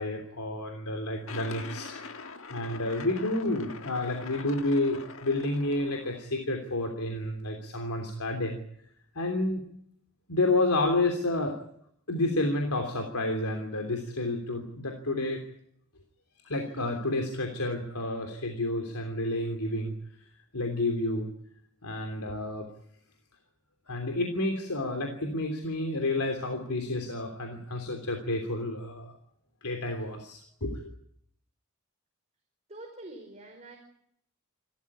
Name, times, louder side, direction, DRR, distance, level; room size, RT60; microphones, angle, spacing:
voice 1, 0.0-1.9 2.5-8.6 9.1-9.6 10.3-11.6 12.1-15.4 16.4-19.9 20.5-21.3 21.8-22.7 23.9-29.1 29.6-30.9, left 2 dB, 85° left, 4 dB, 3.2 m, -30 dB
sound 1, 1.3-6.2, left 4 dB, 65° left, 1.6 m, -43 dB
voice 2, 32.7-33.8, right 2 dB, 30° right, 1 dB, 4.8 m, -45 dB
27.5 x 14.0 x 9.8 m, 0.71 s
head